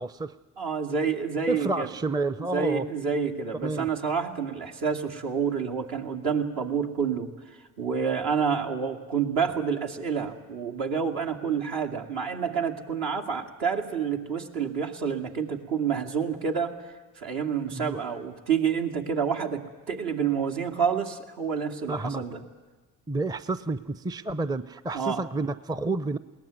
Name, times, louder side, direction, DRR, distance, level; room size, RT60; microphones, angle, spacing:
voice 1, 0.0-0.4 1.5-2.9 3.6-3.9 17.7-18.0 21.9-22.2 23.1-26.2, right 3 dB, 10° right, 15 dB, 0.6 m, -30 dB
voice 2, 0.6-1.9 2.4-7.3 7.8-16.7 17.2-22.4 24.9-25.2, right 6 dB, 60° right, 3 dB, 2.4 m, -28 dB
21.0 x 18.0 x 9.4 m, 1.3 s
hypercardioid pair, 55°, 42 cm